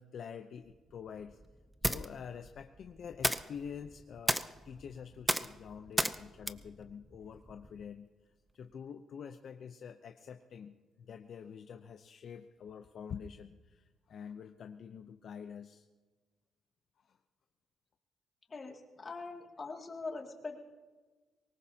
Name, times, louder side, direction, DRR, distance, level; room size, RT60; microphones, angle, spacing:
voice 1, 0.0-1.4 1.8-8.1 8.5-15.9 17.1-17.2, left 7 dB, 60° left, 7 dB, 0.7 m, -47 dB
sound 1, 0.7-7.9, right 1 dB, 5° right, 0.6 m, -37 dB
voice 2, 18.5-20.6, left 3 dB, 35° left, 1 dB, 2.4 m, -42 dB
24.0 x 19.5 x 2.9 m, 1.3 s
cardioid pair, 90°, 0 cm